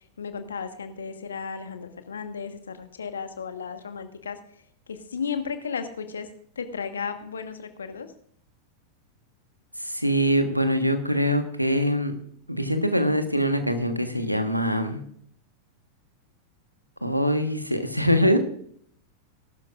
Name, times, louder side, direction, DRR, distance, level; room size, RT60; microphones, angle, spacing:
voice 1, 0.0-4.4 4.9-6.3 6.5-8.1, left 6 dB, 70° left, 9 dB, 1.3 m, -34 dB
voice 2, 9.8-12.1 12.5-15.0 17.0-18.4, equal, 90° right, 8 dB, 1.3 m, -23 dB
19.5 x 12.0 x 2.5 m, 0.63 s
figure-of-eight pair, 90°, 0 cm